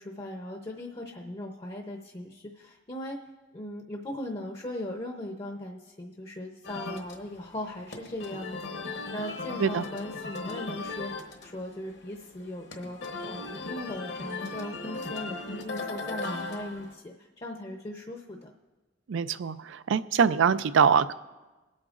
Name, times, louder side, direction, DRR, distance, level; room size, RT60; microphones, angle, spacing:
voice 1, 0.0-3.2 3.5-18.5, left 1 dB, 25° left, 2 dB, 0.6 m, -39 dB
sound 1, 6.6-16.9, left 3 dB, 60° left, 1.1 m, -38 dB
voice 2, 19.1-21.1, right 6 dB, 85° right, 15 dB, 0.4 m, -24 dB
25.0 x 8.6 x 2.5 m, 1.2 s
head